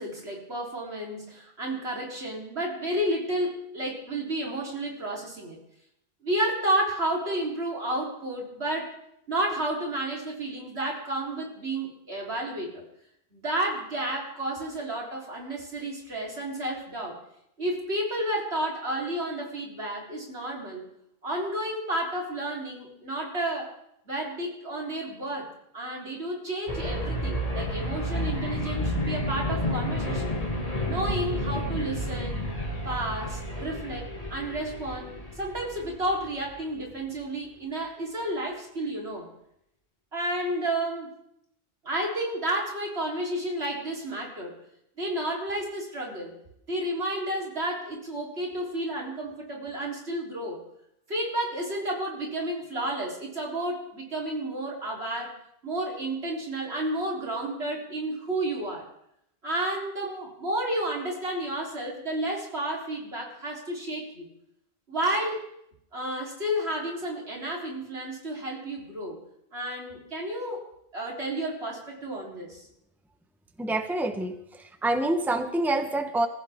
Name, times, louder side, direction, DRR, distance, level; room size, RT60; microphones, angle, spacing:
voice 1, 0.0-5.6 6.2-9.0 9.3-12.8 13.3-17.2 17.6-20.9 21.2-23.7 24.1-25.5 25.7-30.4 30.9-32.4 32.8-39.3 40.1-41.1 41.8-44.5 45.0-46.3 46.7-50.6 51.1-55.3 55.6-58.9 59.4-64.3 64.9-65.5 65.9-69.2 69.5-70.6 70.9-72.7, right 1 dB, 80° right, -2 dB, 4.1 m, -31 dB
sound 1, 26.7-36.6, left 1 dB, 35° left, 2.3 m, -31 dB
voice 2, 73.6-76.3, right 2 dB, ahead, 7 dB, 1.0 m, -27 dB
25.5 x 15.0 x 3.7 m, 0.76 s
omnidirectional pair, 1.1 m